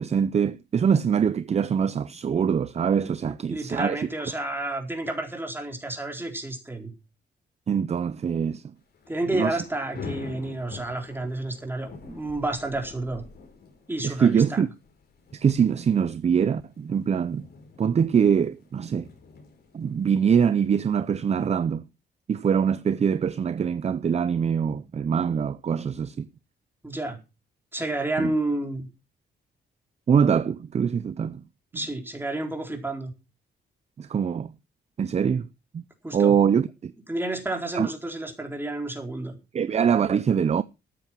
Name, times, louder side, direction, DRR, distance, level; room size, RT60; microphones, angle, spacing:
voice 1, 0.0-4.0 7.7-8.6 9.3-9.6 14.0-14.7 15.3-17.4 17.8-19.1 19.7-21.9 22.3-26.3 28.2-28.3 30.1-31.4 34.0-34.5 35.0-35.5 35.7-35.8 36.1-36.9 37.7-37.9 39.5-40.6, right 7 dB, 35° right, 0.6 m, -23 dB
voice 2, 3.5-6.9 9.1-13.2 13.9-14.6 26.8-27.2 27.7-28.9 31.7-33.1 36.0-36.5 37.1-39.4, right 2 dB, 10° right, 4.2 m, -30 dB
Thunder / Rain, 8.8-21.5, left 4 dB, 65° left, 5.6 m, -46 dB
13.5 x 8.9 x 6.0 m
cardioid pair, 95°, 18 cm